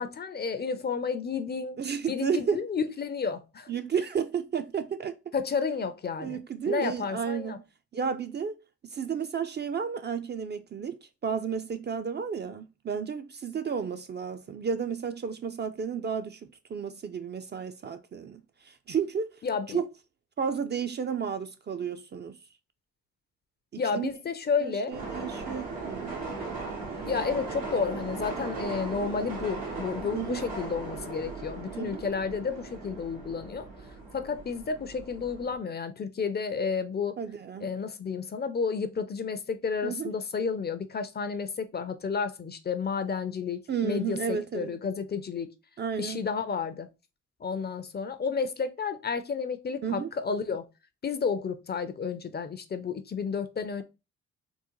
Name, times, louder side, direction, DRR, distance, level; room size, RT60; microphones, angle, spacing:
voice 1, 0.0-1.8 2.1-3.7 5.3-7.6 19.4-19.8 23.8-25.0 27.1-33.7 34.1-37.2 37.6-45.5 46.0-46.9 47.4-50.7 51.0-53.8, left 5 dB, 30° left, 0.4 m, -31 dB
voice 2, 1.8-2.6 3.7-5.2 6.2-7.5 7.9-8.6 8.9-19.3 19.7-19.9 20.4-22.4 23.7-24.1 24.6-26.2 30.1-30.4 31.7-32.0 37.2-37.7 39.8-40.1 43.7-44.7 45.8-46.2 49.8-50.1, right 7 dB, 35° right, 0.4 m, -32 dB
sound 1, 24.9-35.6, right 3 dB, 90° right, 1.1 m, -38 dB
3.7 x 2.1 x 2.9 m
supercardioid pair, 60°, 32 cm